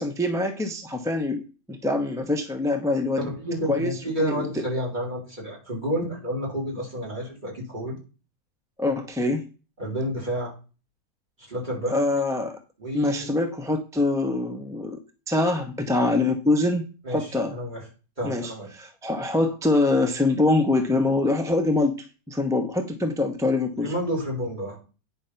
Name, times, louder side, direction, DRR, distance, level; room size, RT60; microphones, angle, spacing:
voice 1, 0.0-3.3 3.7-4.5 8.8-9.5 11.9-12.6 12.9-15.0 15.3-17.6 18.2-23.9, left 2 dB, 5° right, 6 dB, 0.6 m, -24 dB
voice 2, 3.2-8.0 9.8-10.5 11.4-11.9 12.8-13.3 17.0-17.8 18.2-18.7 23.8-24.8, equal, 30° right, -1 dB, 4.0 m, -30 dB
9.3 x 5.6 x 5.6 m, 0.34 s
omnidirectional pair, 1.6 m